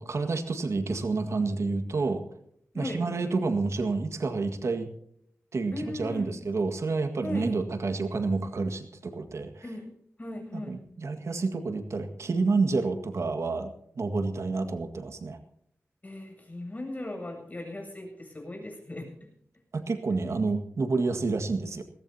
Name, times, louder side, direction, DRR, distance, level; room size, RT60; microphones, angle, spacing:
voice 1, 0.0-2.2 2.8-4.9 5.5-9.5 10.5-15.4 19.7-21.8, right 3 dB, 75° right, 6 dB, 1.8 m, -29 dB
voice 2, 5.7-6.3 7.2-7.5 9.6-9.9 10.2-10.8 16.0-19.1, left 1 dB, 30° left, 2 dB, 7.9 m, -37 dB
21.0 x 18.0 x 2.9 m, 0.69 s
wide cardioid pair, 70°, 5 cm